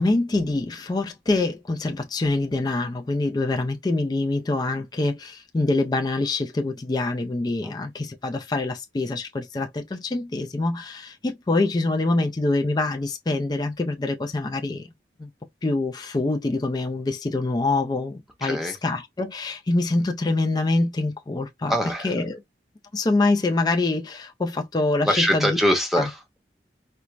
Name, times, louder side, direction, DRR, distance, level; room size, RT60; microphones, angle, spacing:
voice 1, 0.0-14.9 15.2-15.3 15.6-21.7 22.0-22.4 22.9-25.5 25.9-26.1, left 2 dB, 25° left, 0.4 m, -25 dB
voice 2, 18.4-18.7 21.7-22.1 25.0-26.4, equal, ahead, 0.7 m, -23 dB
4.3 x 2.0 x 2.4 m
head